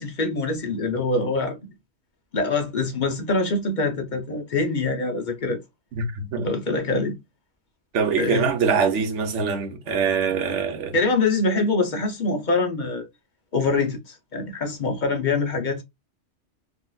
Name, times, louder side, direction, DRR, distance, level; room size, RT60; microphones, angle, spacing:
voice 1, 0.0-1.6 2.3-5.6 6.4-7.2 8.2-8.5 10.9-13.0 13.5-15.8, left 3 dB, 45° left, 0.7 m, -24 dB
voice 2, 5.9-6.5 7.9-10.9, right 5 dB, 70° right, 1.1 m, -23 dB
3.7 x 2.4 x 2.3 m
omnidirectional pair, 1.3 m